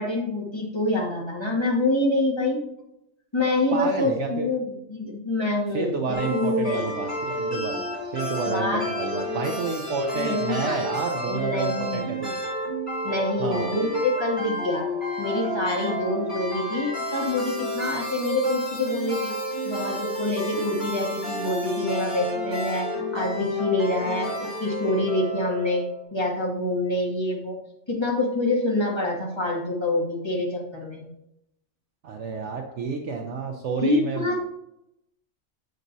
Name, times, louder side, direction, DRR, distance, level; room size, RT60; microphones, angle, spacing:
voice 1, 0.0-2.7 3.3-6.9 8.5-8.8 10.1-10.8 11.3-12.2 13.0-14.9 15.2-19.3 19.6-25.8 26.1-27.6 27.9-31.0 33.8-34.4, left 2 dB, 20° left, -2 dB, 1.9 m, -26 dB
voice 2, 3.7-4.5 5.7-12.3 13.4-13.7 32.0-34.4, right 4 dB, 65° right, 1 dB, 1.0 m, -30 dB
sound 1, 6.1-26.0, equal, 35° left, 3.4 m, -30 dB
7.9 x 7.2 x 2.7 m, 0.81 s
omnidirectional pair, 1.4 m